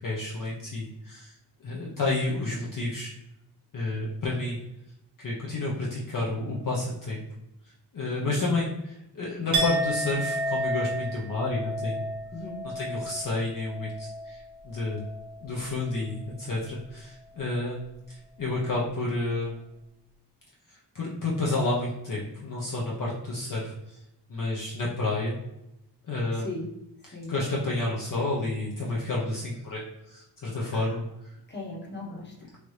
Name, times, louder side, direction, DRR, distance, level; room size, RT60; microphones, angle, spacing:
voice 1, 0.0-1.3 1.6-3.1 3.7-4.6 5.2-7.2 7.6-8.7 9.1-12.1 12.6-15.1 15.4-19.6 20.7-24.0 24.3-25.4 26.1-26.5 27.1-31.4, left 2 dB, 50° left, -4 dB, 0.7 m, -30 dB
Chink clink, 9.5-15.5 15.8-16.2, right 1 dB, 45° right, 1.1 m, -32 dB
voice 2, 12.3-12.6 26.4-26.7 27.1-27.3 30.7-30.9 31.5-32.5, left 2 dB, 25° left, -2 dB, 0.9 m, -38 dB
3.1 x 2.6 x 3.1 m, 0.89 s
wide cardioid pair, 75°, 42 cm